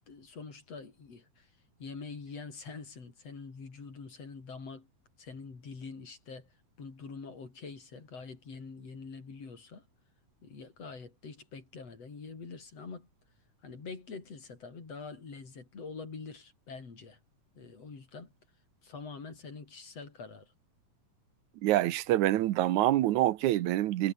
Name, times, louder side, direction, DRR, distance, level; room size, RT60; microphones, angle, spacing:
voice 1, 0.1-1.5 1.8-4.9 5.2-6.5 6.8-9.9 10.4-13.1 13.6-17.2 17.6-18.3 18.8-20.5, left 4 dB, 55° left, 5.4 m, -45 dB
voice 2, 21.6-24.1, right 15 dB, 75° right, 2.3 m, -26 dB
omnidirectional pair, 3.5 m